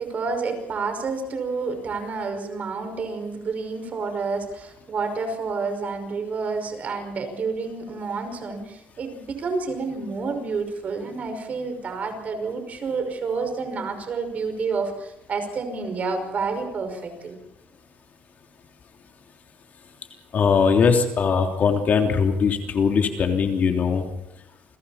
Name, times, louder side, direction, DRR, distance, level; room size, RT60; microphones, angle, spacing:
voice 1, 0.0-17.4, right 4 dB, 45° right, 6 dB, 5.6 m, -29 dB
voice 2, 20.3-24.1, left 6 dB, 45° left, 4 dB, 3.2 m, -20 dB
29.5 x 22.5 x 4.3 m, 0.90 s
cardioid pair, 125°, 4 cm